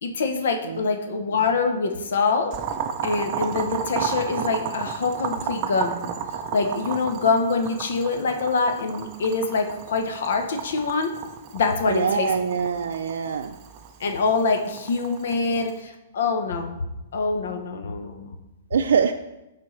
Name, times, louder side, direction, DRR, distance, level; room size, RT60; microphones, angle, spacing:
voice 1, 0.0-2.5 3.0-5.9 6.5-11.1 11.5-12.3 14.0-16.7 17.1-18.3, left 4 dB, 60° left, 5 dB, 0.8 m, -25 dB
Boiling, 2.5-15.8, right 7 dB, 20° right, 0.4 m, -33 dB
voice 2, 11.9-13.6 18.7-19.1, right 6 dB, 85° right, 5 dB, 0.4 m, -23 dB
12.0 x 4.2 x 3.1 m, 0.97 s
hypercardioid pair, 175°, 0 cm